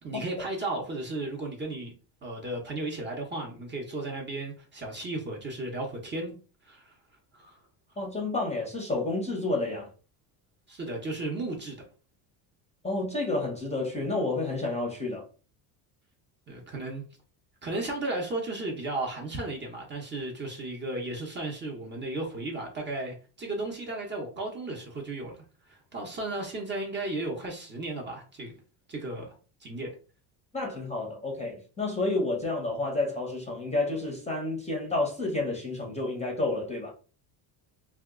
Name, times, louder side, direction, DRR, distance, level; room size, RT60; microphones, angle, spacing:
voice 1, 0.0-1.9 2.2-6.3 6.6-6.9 7.3-7.6 10.7-11.8 16.5-17.0 17.6-25.3 25.7-28.5 28.9-29.3 29.6-29.9, right 2 dB, 25° right, 0.7 m, -34 dB
voice 2, 8.0-9.9 12.8-15.2 30.5-36.9, left 2 dB, 15° left, 0.7 m, -30 dB
2.8 x 2.3 x 3.6 m
cardioid pair, 145°, 48 cm